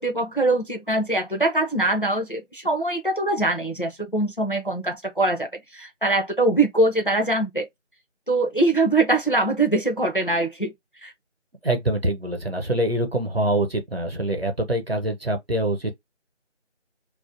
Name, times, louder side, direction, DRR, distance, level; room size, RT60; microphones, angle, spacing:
voice 1, 0.0-7.7 8.3-10.7 11.0-11.1, right 2 dB, 45° left, 0.5 m, -23 dB
voice 2, 11.6-15.9, right 1 dB, 55° right, 0.7 m, -24 dB
2.4 x 2.0 x 2.5 m
figure-of-eight pair, 175°, 36 cm